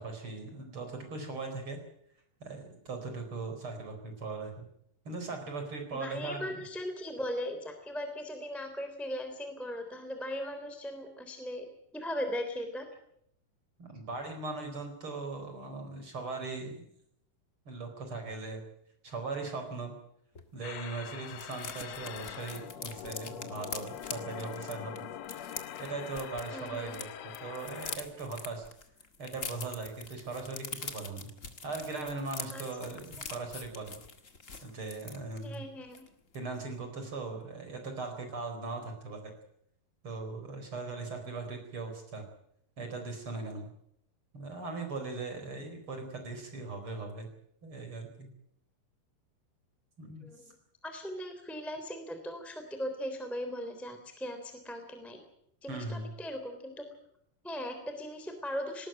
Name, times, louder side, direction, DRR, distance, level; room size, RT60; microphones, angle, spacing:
voice 1, 0.0-1.8 2.4-4.7 5.0-6.5 13.8-16.9 17.7-18.6 19.0-19.9 20.5-25.0 25.8-28.6 29.2-31.3 31.6-34.0 34.6-35.7 36.3-39.3 40.0-42.3 42.8-43.7 44.3-47.3 47.6-48.3 50.0-50.2 55.7-56.1, right 3 dB, 35° right, 5 dB, 4.9 m, -39 dB
voice 2, 5.9-11.7 11.9-12.9 26.5-27.0 32.5-32.6 35.4-36.0 50.2-50.5 50.8-55.2 55.6-56.8 57.4-58.9, equal, ahead, 6 dB, 2.7 m, -38 dB
sound 1, 20.3-20.5 20.7-20.8 21.1-27.0 27.3-35.5 35.9-36.1 36.3-36.6, left 5 dB, 60° left, 0.8 m, -44 dB
sound 2, 20.6-28.0, left 10 dB, 85° left, 1.4 m, -43 dB
20.0 x 18.5 x 8.9 m, 0.73 s
omnidirectional pair, 4.6 m